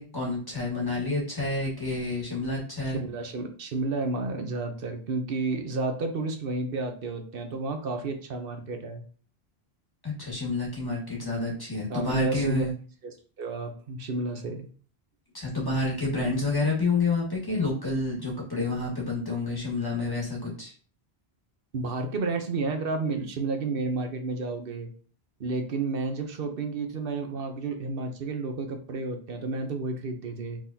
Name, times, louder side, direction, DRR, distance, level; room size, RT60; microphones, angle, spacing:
voice 1, 0.0-3.0 10.0-12.7 15.3-20.7, left 3 dB, 20° left, -3 dB, 1.7 m, -29 dB
voice 2, 2.8-9.0 11.9-12.6 13.0-14.7 21.7-24.9 25.4-30.6, right 3 dB, 60° right, 5 dB, 1.0 m, -31 dB
4.6 x 3.9 x 2.8 m, 0.41 s
omnidirectional pair, 1.1 m